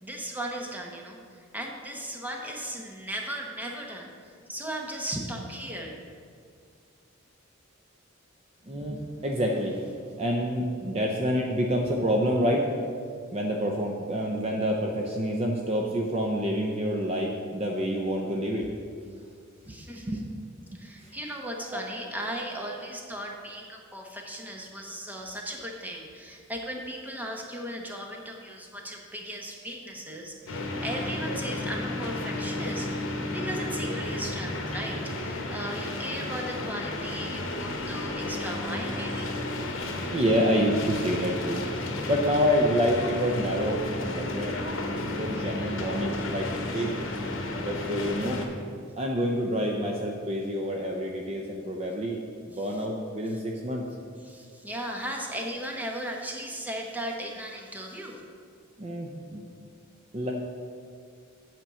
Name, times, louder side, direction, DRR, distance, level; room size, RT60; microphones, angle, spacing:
voice 1, 0.0-4.1 4.5-6.0 19.7-20.2 20.7-39.3 52.5-52.8 53.3-53.4 54.2-58.2, right 1 dB, 10° right, 1 dB, 0.9 m, -37 dB
voice 2, 8.7-9.8 10.2-12.7 13.3-18.7 19.7-20.4 20.7-21.1 21.7-21.8 40.1-41.6 42.1-44.6 45.1-46.9 47.6-48.4 49.0-53.8 58.8-59.5 60.1-60.3, equal, 30° right, 0 dB, 0.6 m, -28 dB
sound 1, 30.5-48.4, left 1 dB, 65° left, 1.1 m, -32 dB
8.8 x 4.5 x 6.8 m, 2.1 s
head